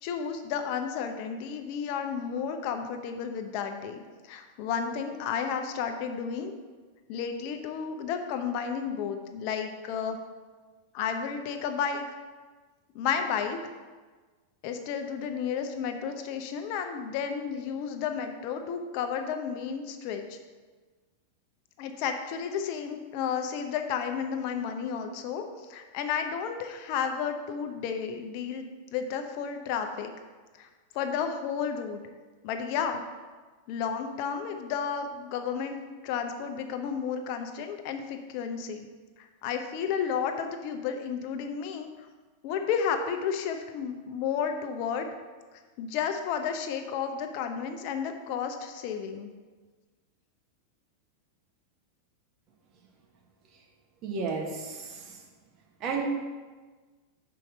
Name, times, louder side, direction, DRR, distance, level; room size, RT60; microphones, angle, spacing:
voice 1, 0.0-6.5 7.1-10.2 10.9-12.0 12.9-13.6 14.6-20.4 21.8-25.4 25.7-28.7 28.9-30.1 30.6-30.7 30.9-32.0 32.4-33.0 33.7-35.8 36.0-38.9 39.4-41.9 42.4-45.1 45.8-49.3, left 7 dB, 50° left, 6 dB, 0.8 m, -32 dB
voice 2, 54.0-55.1 55.8-56.0, right 4 dB, 40° right, 0 dB, 1.4 m, -32 dB
5.6 x 4.7 x 5.3 m, 1.4 s
figure-of-eight pair, 90°, 0 cm